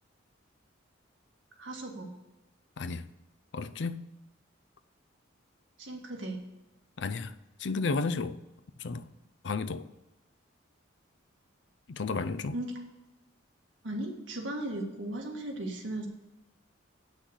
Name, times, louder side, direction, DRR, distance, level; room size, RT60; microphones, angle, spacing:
voice 1, 1.6-2.1 5.8-6.4 12.5-12.7 13.8-16.1, right 1 dB, 70° right, 1.9 m, -36 dB
voice 2, 3.5-4.1 7.0-7.3 7.6-8.4 8.8-9.1 9.4-9.9 11.9-12.6, left 4 dB, 60° left, 0.5 m, -32 dB
8.3 x 6.3 x 6.4 m
head